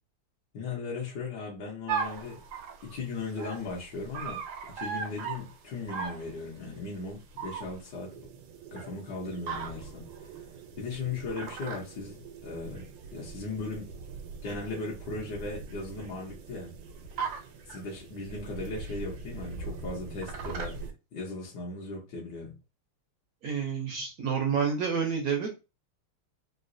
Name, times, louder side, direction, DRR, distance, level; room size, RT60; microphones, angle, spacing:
voice 1, 0.5-2.4 2.8-4.4 4.7-8.2 8.7-10.3 10.8-13.9 14.4-16.7 17.7-20.8 21.1-22.5, left 3 dB, 60° left, 1.3 m, -37 dB
sound 1, 1.9-20.9, right 5 dB, 85° right, 1.6 m, -40 dB
voice 2, 23.4-25.5, right 6 dB, 70° right, 0.8 m, -29 dB
3.9 x 2.2 x 2.5 m
omnidirectional pair, 2.4 m